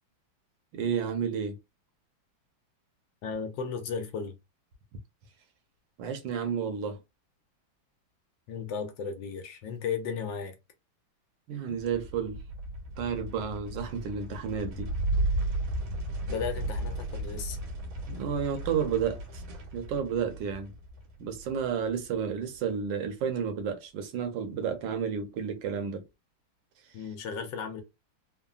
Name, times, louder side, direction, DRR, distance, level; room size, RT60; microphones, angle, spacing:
voice 1, 0.7-1.6 6.0-7.0 11.5-12.4 13.0-14.9 18.1-19.4 19.7-20.7 21.2-26.0, right 7 dB, 70° right, 1.4 m, -31 dB
voice 2, 3.2-4.3 8.5-10.5 11.7-11.8 16.3-17.6 26.9-27.8, left 6 dB, 70° left, 1.3 m, -35 dB
sound 1, 11.8-22.3, right 1 dB, 90° right, 1.7 m, -35 dB
3.7 x 2.1 x 2.3 m
omnidirectional pair, 2.1 m